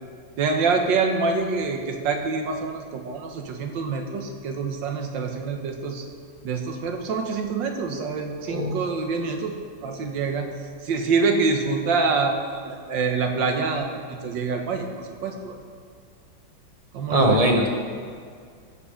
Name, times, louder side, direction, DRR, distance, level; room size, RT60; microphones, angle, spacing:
voice 1, 0.4-6.0 6.4-10.5 10.8-15.6 16.9-17.4, right 4 dB, 75° right, 4 dB, 1.7 m, -26 dB
voice 2, 17.1-17.7, right 1 dB, 30° right, 1 dB, 0.6 m, -20 dB
15.0 x 5.2 x 5.0 m, 2.1 s
omnidirectional pair, 2.1 m